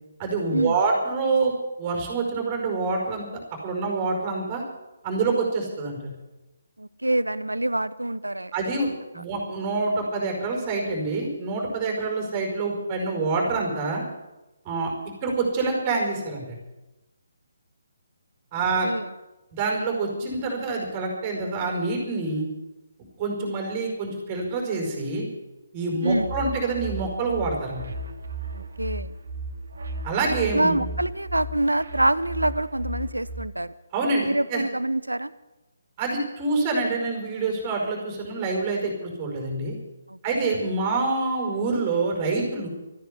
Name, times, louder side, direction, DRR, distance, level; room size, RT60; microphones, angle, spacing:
voice 1, 0.2-1.5 1.8-3.2 3.6-4.6 5.0-6.1 8.5-14.0 14.6-14.9 15.2-16.6 18.5-18.9 19.5-22.5 23.2-25.3 25.7-27.8 30.0-30.7 33.9-34.6 36.0-39.7 40.2-42.7, right 3 dB, 25° right, 1 dB, 4.9 m, -26 dB
voice 2, 6.8-8.5 8.8-8.9 18.8-19.1 26.0-26.3 28.5-29.1 30.5-33.7 34.2-35.3 40.1-40.7, right 1 dB, 85° right, 16 dB, 0.8 m, -26 dB
sound 1, 26.1-33.4, right 1 dB, 60° right, 2.2 m, -35 dB
13.5 x 10.5 x 9.9 m, 1.0 s
figure-of-eight pair, 140°, 0 cm